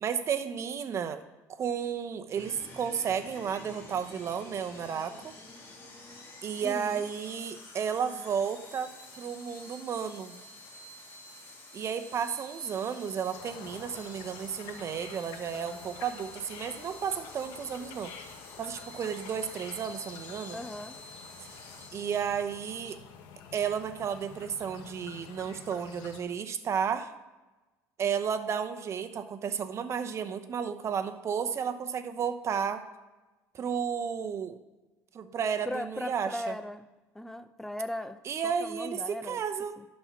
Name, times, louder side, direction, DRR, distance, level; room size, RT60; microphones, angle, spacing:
voice 1, 0.0-1.2 1.5-5.3 6.4-10.4 11.7-18.1 18.6-20.6 21.4-21.5 21.9-23.0 23.5-27.1 28.0-32.8 33.5-34.6 35.1-36.5 38.2-39.8, right 7 dB, 40° right, 9 dB, 0.8 m, -33 dB
sound 1, 2.3-21.9, left 2 dB, 35° left, 2.6 m, -49 dB
voice 2, 6.6-7.0 20.5-21.0 35.7-36.9 37.1-39.4 39.8-39.9, left 1 dB, 5° left, 11 dB, 0.5 m, -38 dB
sound 2, 13.3-26.2, left 7 dB, 75° left, 1.2 m, -48 dB
11.5 x 4.4 x 5.8 m, 1.1 s
cardioid pair, 115°, 7 cm